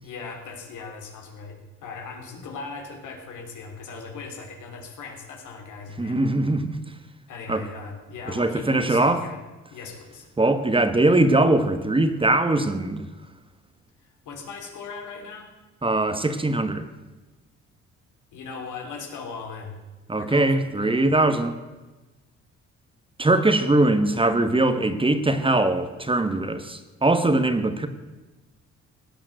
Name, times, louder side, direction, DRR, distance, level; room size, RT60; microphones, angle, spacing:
voice 1, 0.0-6.2 7.3-9.4 9.7-10.3 14.2-15.5 18.3-19.8 20.2-20.9, left 4 dB, 85° left, 3 dB, 3.2 m, -39 dB
voice 2, 6.0-6.8 7.5-7.6 8.3-9.3 10.4-13.1 15.8-16.9 20.1-21.6 23.2-27.9, right 2 dB, 15° right, 9 dB, 1.3 m, -21 dB
17.0 x 8.9 x 7.7 m, 1.1 s
cardioid pair, 90°, 30 cm